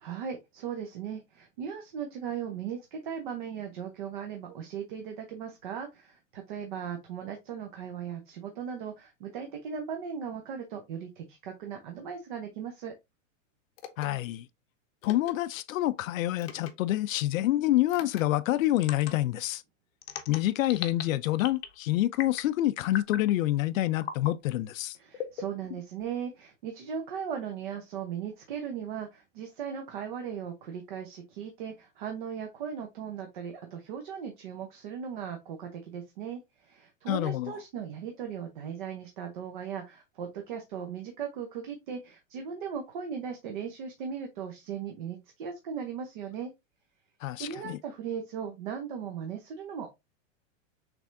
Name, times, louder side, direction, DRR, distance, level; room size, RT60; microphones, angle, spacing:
voice 1, 0.0-12.9 24.9-46.5 47.3-49.9, right 7 dB, 40° right, 0.7 m, -38 dB
sound 1, 13.8-14.1 15.0-15.3 16.4-16.7 17.9-18.2 18.8-19.1 20.0-21.0 21.4-21.8 22.1-22.5 22.9-23.3 24.0-24.3 25.1-26.0, left 9 dB, 50° left, 0.7 m, -38 dB
voice 2, 14.0-14.5 15.0-19.6 20.3-25.0 37.1-37.6 47.2-47.8, left 15 dB, 85° left, 0.5 m, -27 dB
6.0 x 3.4 x 2.5 m
supercardioid pair, 180°, 39 cm